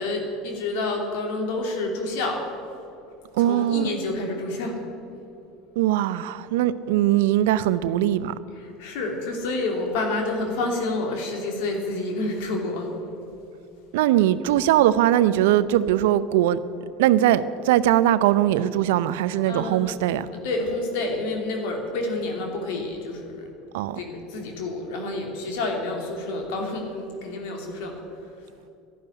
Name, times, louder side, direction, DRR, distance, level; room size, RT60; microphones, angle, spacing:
voice 1, 0.0-2.4 3.4-4.7 8.6-12.9 19.4-19.8 20.4-23.5 24.0-28.0, left 2 dB, 70° left, 2.9 m, -29 dB
voice 2, 3.3-3.9 5.8-8.3 13.9-16.6 17.0-20.3 23.7-24.0, right 12 dB, 70° right, 0.6 m, -20 dB
12.0 x 11.0 x 10.0 m
hypercardioid pair, 75°, 0 cm